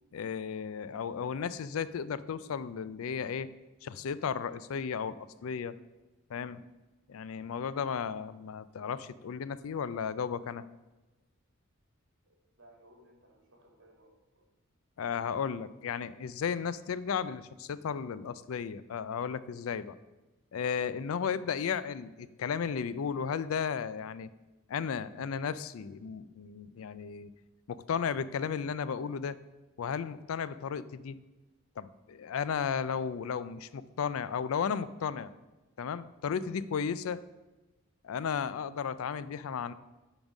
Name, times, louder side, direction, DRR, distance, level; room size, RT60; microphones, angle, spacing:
voice 1, 0.1-3.5 3.8-5.8 6.3-6.6 7.1-10.6 15.0-20.0 20.5-24.3 24.7-27.3 27.7-29.4 29.8-31.2 31.8-35.3 35.8-37.2 38.0-39.7, left 6 dB, 80° left, 16 dB, 0.4 m, -34 dB
voice 2, 12.3-14.5 21.3-21.4, right 1 dB, 60° right, 1 dB, 1.9 m, -61 dB
8.8 x 4.0 x 6.0 m, 1.1 s
head